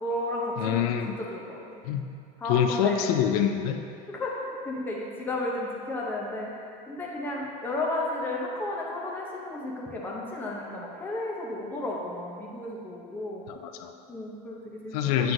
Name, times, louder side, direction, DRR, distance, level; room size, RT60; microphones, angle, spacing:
voice 1, 0.0-1.6 2.4-3.1 4.1-6.5 6.9-13.4 14.1-15.3, left 1 dB, 10° left, -3 dB, 0.7 m, -33 dB
voice 2, 0.6-1.1 1.9-2.0 2.5-3.8 13.5-13.9 14.9-15.3, left 9 dB, 90° left, 6 dB, 0.5 m, -25 dB
7.8 x 5.8 x 2.6 m, 2.4 s
cardioid pair, 170°, 19 cm